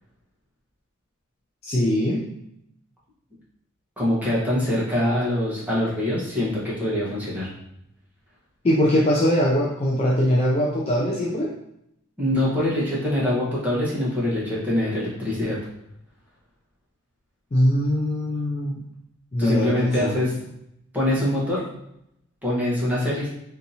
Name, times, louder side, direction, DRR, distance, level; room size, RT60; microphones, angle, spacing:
voice 1, 1.6-2.2 8.6-11.5 17.5-18.8 19.3-20.2, equal, 30° left, -2 dB, 0.3 m, -22 dB
voice 2, 4.0-7.5 12.2-15.6 19.4-20.4 20.9-21.6 22.4-23.3, left 1 dB, 5° right, -7 dB, 1.0 m, -24 dB
3.5 x 2.7 x 2.7 m, 0.78 s
head